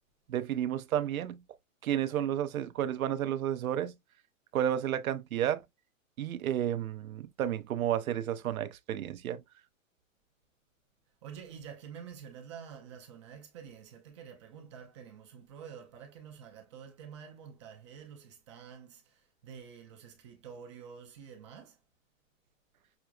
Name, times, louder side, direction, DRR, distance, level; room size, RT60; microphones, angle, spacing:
voice 1, 0.3-1.4 1.8-4.0 4.5-5.6 6.2-9.4, right 10 dB, 85° right, 0.6 m, -31 dB
voice 2, 11.2-21.8, right 7 dB, 25° right, 0.4 m, -48 dB
5.9 x 2.1 x 2.3 m
hypercardioid pair, 140°, 41 cm